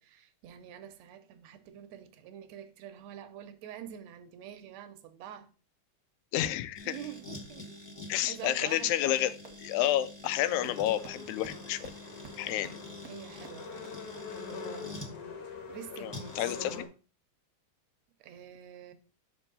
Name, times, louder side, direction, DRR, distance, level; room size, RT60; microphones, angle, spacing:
voice 1, 0.0-5.5 6.8-7.9 8.2-9.0 12.5-12.7 13.0-14.0 15.7-16.4 18.2-18.9, right 10 dB, 75° right, 1.9 m, -46 dB
voice 2, 6.3-7.0 8.1-9.3 9.6-11.9 12.4-12.8 16.0-16.8, left 13 dB, 90° left, 2.0 m, -30 dB
sound 1, 6.7-15.1 16.1-16.8, left 2 dB, 25° left, 0.5 m, -47 dB
sound 2, 9.0-9.1 9.4-9.5 9.8-9.9 10.2-10.3 10.6-10.7 11.0-11.1 11.4-11.5 11.8-11.9 12.2-12.3 12.6-12.7 13.0-13.1 13.4-13.5 13.8-13.9, right 6 dB, 40° right, 1.4 m, -46 dB
sound 3, 10.4-16.9, left 4 dB, 65° left, 2.0 m, -44 dB
6.0 x 4.5 x 5.4 m
omnidirectional pair, 3.3 m